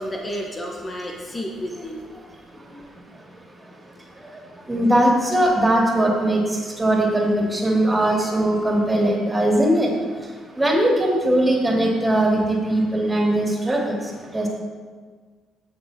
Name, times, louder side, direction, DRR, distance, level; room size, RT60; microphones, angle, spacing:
voice 1, 0.0-2.0, equal, 25° left, 0 dB, 1.3 m, -31 dB
voice 2, 4.7-6.4 6.8-9.9 10.6-14.0 14.3-14.5, right 1 dB, 15° right, -2 dB, 2.6 m, -20 dB
16.0 x 5.8 x 2.9 m, 1.5 s
figure-of-eight pair, 45°, 0 cm